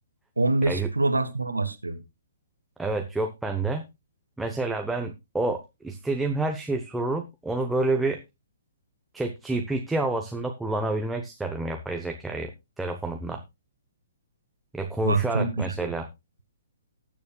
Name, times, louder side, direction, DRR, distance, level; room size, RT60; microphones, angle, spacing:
voice 1, 0.4-2.0 15.0-15.9, right 3 dB, 80° right, 1.3 m, -25 dB
voice 2, 2.8-3.9 4.4-8.2 9.1-12.5 12.8-13.4 14.7-16.1, right 2 dB, 5° right, 0.8 m, -28 dB
19.0 x 7.0 x 2.3 m
figure-of-eight pair, 125°, 0 cm